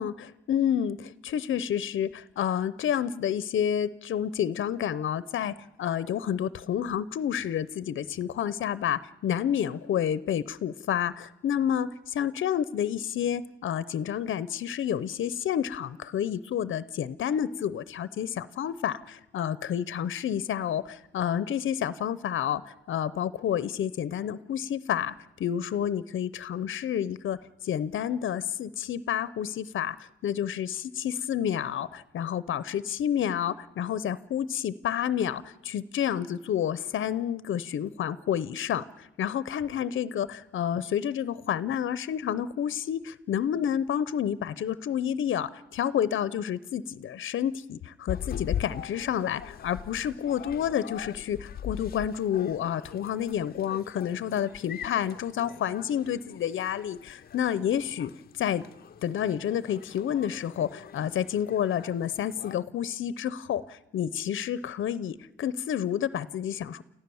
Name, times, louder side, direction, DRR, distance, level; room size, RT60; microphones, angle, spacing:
voice 1, 0.0-25.1 25.4-27.4 27.6-58.1 58.4-58.6 59.0-66.8, left 9 dB, 80° left, 16 dB, 0.7 m, -29 dB
sound 1, 48.1-62.5, left 9 dB, 50° left, 0.7 m, -41 dB
29.5 x 14.5 x 7.0 m, 0.94 s
wide cardioid pair, 175°, 20 cm